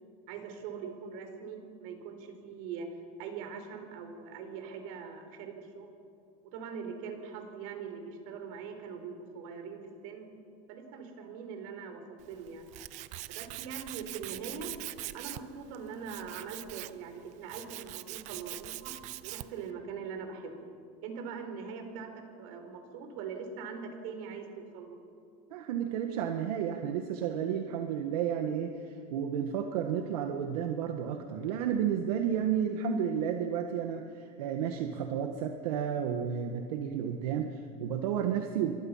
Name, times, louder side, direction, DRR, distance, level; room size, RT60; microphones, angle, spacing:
voice 1, 0.3-2.9 3.2-5.9 6.5-10.3 10.7-12.7 13.3-14.7 15.1-18.9 19.2-20.7 21.0-25.0, right 6 dB, 60° right, 5 dB, 4.4 m, -42 dB
Tools, 12.2-19.7, right 17 dB, 40° right, 0.7 m, -43 dB
voice 2, 25.5-38.7, right 8 dB, 80° right, 5 dB, 1.8 m, -32 dB
27.5 x 24.5 x 5.8 m, 2.5 s
supercardioid pair, 170°, 20 cm